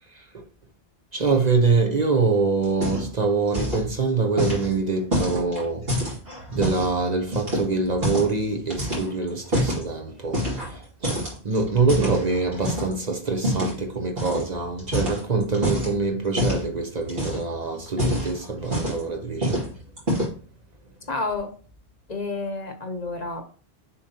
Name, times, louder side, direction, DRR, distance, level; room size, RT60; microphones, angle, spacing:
voice 1, 1.1-6.2 6.5-19.7, right 4 dB, 45° right, 0.9 m, -25 dB
sound 1, 2.6-3.2 3.5-3.9 4.4-6.9 7.3-8.4 8.7-9.8 10.3-10.8 11.0-12.9 13.4-13.8 14.2-14.4 14.8-15.9 16.4-16.7 17.0-17.5 17.9-19.1 19.4-19.7 20.0-20.4, equal, 65° right, 2.8 m, -26 dB
voice 2, 21.1-21.5 22.1-23.4, left 3 dB, 40° left, 1.0 m, -29 dB
7.0 x 4.9 x 2.8 m
omnidirectional pair, 1.1 m